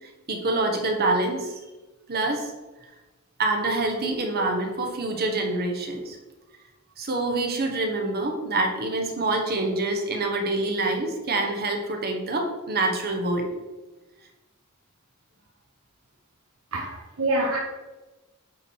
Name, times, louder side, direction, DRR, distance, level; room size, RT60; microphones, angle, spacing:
voice 1, 0.3-1.5 2.1-2.5 3.4-6.2 7.0-13.5, right 2 dB, 45° right, 3 dB, 1.3 m, -26 dB
voice 2, 16.7-17.6, right 1 dB, 70° right, -1 dB, 1.0 m, -26 dB
8.8 x 4.6 x 4.6 m, 1.1 s
head